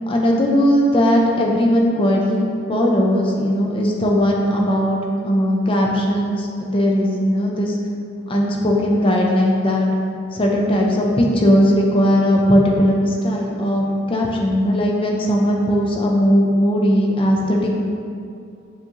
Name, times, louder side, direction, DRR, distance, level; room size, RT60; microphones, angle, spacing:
voice 1, 0.1-5.0 5.2-7.8 8.3-9.9 10.3-17.8, equal, 25° left, -1 dB, 0.5 m, -18 dB
6.8 x 2.6 x 2.9 m, 2.4 s
head